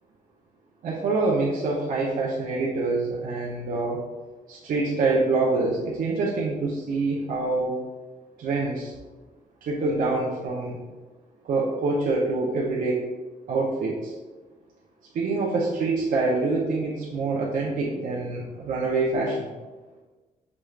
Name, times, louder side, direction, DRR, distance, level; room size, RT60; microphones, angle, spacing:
voice 1, 0.8-4.0 4.5-7.8 8.4-8.9 9.6-10.8 11.4-13.0 13.5-14.1 15.1-19.5, right 3 dB, 75° right, -4 dB, 0.6 m, -25 dB
6.1 x 2.3 x 3.2 m, 1.3 s
cardioid pair, 120°, 14 cm